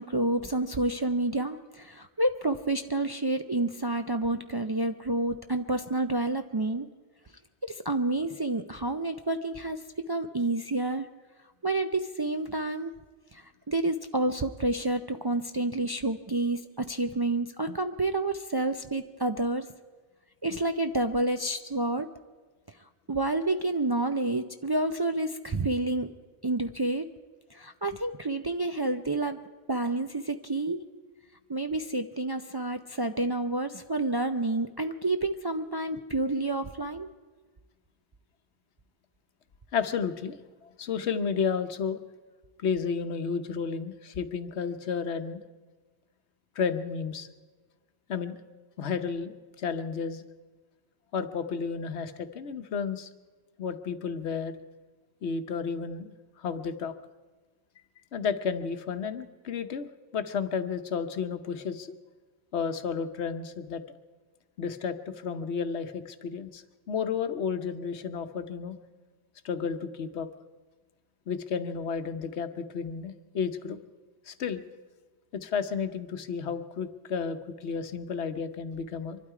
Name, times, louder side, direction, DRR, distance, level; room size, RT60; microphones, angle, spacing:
voice 1, 0.0-6.9 7.6-11.1 11.6-12.9 13.3-19.7 20.4-22.1 23.1-26.1 26.4-27.1 27.5-29.4 29.7-30.8 31.5-37.1, right 2 dB, 35° right, 7 dB, 0.4 m, -29 dB
voice 2, 39.7-40.4 40.6-42.0 42.6-45.4 46.5-47.3 48.1-48.4 48.8-50.2 51.1-53.1 53.6-54.5 55.2-56.9 58.1-62.0 62.5-63.8 64.6-68.8 69.4-70.3 71.3-73.8 74.3-74.6 75.3-79.2, left 6 dB, 85° left, 9 dB, 1.2 m, -32 dB
25.0 x 12.0 x 4.8 m, 1.3 s
omnidirectional pair, 1.1 m